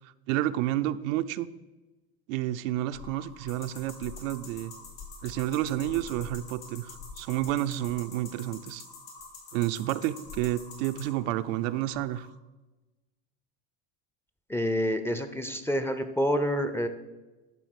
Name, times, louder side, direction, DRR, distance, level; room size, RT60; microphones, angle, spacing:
voice 1, 0.3-1.5 2.3-4.7 5.2-8.8 9.5-12.3, right 14 dB, 75° right, 11 dB, 0.6 m, -30 dB
sound 1, 2.9-12.3, left 3 dB, 60° left, 1.8 m, -49 dB
sound 2, 3.5-11.0, left 6 dB, 85° left, 3.5 m, -46 dB
voice 2, 14.5-16.9, equal, 5° left, 7 dB, 0.5 m, -28 dB
11.5 x 3.9 x 6.5 m, 1.1 s
supercardioid pair, 120°, 39 cm